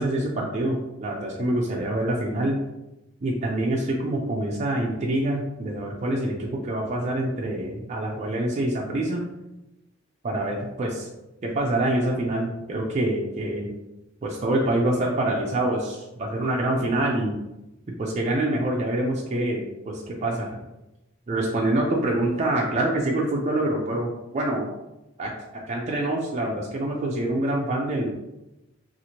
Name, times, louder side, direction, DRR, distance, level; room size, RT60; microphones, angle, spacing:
voice 1, 0.0-2.6 3.2-9.2 10.2-11.1 11.4-13.7 14.2-17.3 18.0-20.6 21.3-24.7 25.2-25.3 25.7-28.1, right 1 dB, 35° right, -2 dB, 0.4 m, -26 dB
2.8 x 2.4 x 2.8 m, 0.95 s
head